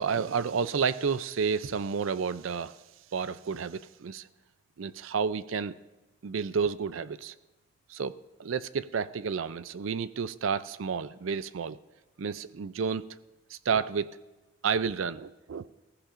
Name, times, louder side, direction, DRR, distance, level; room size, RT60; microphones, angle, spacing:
voice 1, 0.0-2.8 3.1-4.3 4.8-5.8 6.2-7.3 7.9-11.8 12.2-13.1 13.5-14.2 14.6-15.7, right 6 dB, 90° right, 15 dB, 0.5 m, -31 dB
20.0 x 15.5 x 2.6 m, 1.1 s
head